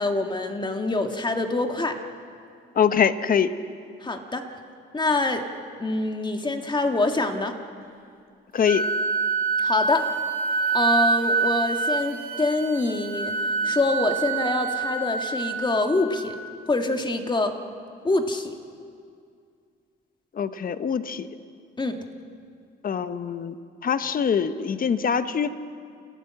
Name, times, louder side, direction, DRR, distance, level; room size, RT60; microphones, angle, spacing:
voice 1, 0.0-2.0 4.0-4.5 4.9-5.5 5.8-7.6 9.6-10.1 10.7-13.3 13.6-16.4 16.7-17.6 18.0-18.6 21.8-22.0, left 2 dB, 25° left, 5 dB, 1.9 m, -25 dB
voice 2, 2.7-3.5 8.5-8.9 20.3-21.3 22.8-23.6 23.8-25.5, left 7 dB, 45° left, 12 dB, 1.0 m, -23 dB
Wind instrument woodwind instrument, 8.6-16.4, right 4 dB, 45° right, 2.4 m, -26 dB
29.5 x 14.5 x 7.6 m, 2.3 s
cardioid pair, 90°, 20 cm